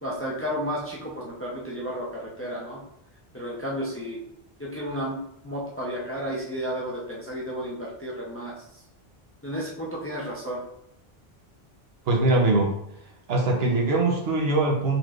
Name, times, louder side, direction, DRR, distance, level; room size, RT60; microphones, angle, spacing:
voice 1, 0.0-2.8 3.3-4.2 4.6-5.2 5.4-8.6 9.4-10.6, equal, 15° left, -4 dB, 0.5 m, -32 dB
voice 2, 12.1-12.7 13.3-15.0, right 2 dB, 75° right, 1 dB, 1.0 m, -22 dB
4.1 x 3.0 x 2.4 m, 0.77 s
omnidirectional pair, 1.1 m